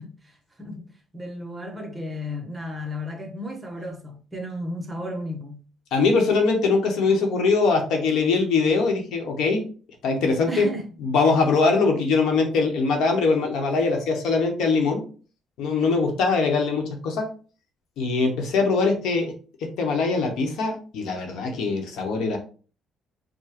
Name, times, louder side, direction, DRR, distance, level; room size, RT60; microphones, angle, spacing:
voice 1, 0.0-5.6 10.5-10.9, left 1 dB, 15° right, 0.8 m, -34 dB
voice 2, 5.9-9.7 10.0-10.7 11.0-15.0 15.6-17.3 18.0-19.3 19.8-22.4, left 4 dB, 75° left, 1.0 m, -22 dB
4.8 x 2.2 x 2.9 m
cardioid pair, 125°, 0 cm